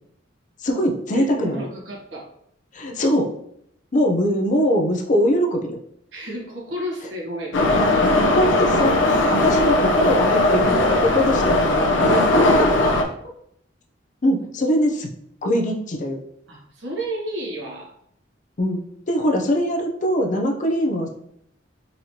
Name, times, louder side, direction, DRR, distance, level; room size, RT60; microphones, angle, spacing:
voice 1, 0.6-1.7 2.7-3.3 3.9-5.8 8.3-12.1 12.4-12.9 14.2-15.1 15.4-16.2 18.6-21.1, equal, 40° left, 1 dB, 0.6 m, -22 dB
voice 2, 1.1-2.3 6.1-7.6 12.0-12.6 16.5-17.9, right 1 dB, 75° right, -4 dB, 1.4 m, -32 dB
Subway metro underground, 7.5-13.0, left 1 dB, 85° left, 0.6 m, -18 dB
4.0 x 3.1 x 2.8 m, 0.72 s
head